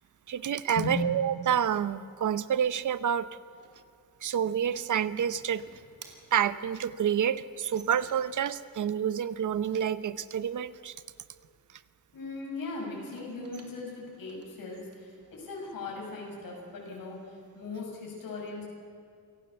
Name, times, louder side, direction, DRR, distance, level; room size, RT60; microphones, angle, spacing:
voice 1, 0.3-3.3 4.2-5.7 6.3-11.0, right 8 dB, 60° right, 15 dB, 0.8 m, -28 dB
sound 1, 3.6-8.5 12.9-16.0, right 5 dB, 45° right, 2.5 m, -55 dB
voice 2, 12.1-18.7, left 3 dB, 75° left, -2 dB, 7.0 m, -38 dB
27.5 x 17.5 x 7.0 m, 2.3 s
wide cardioid pair, 175°, 35 cm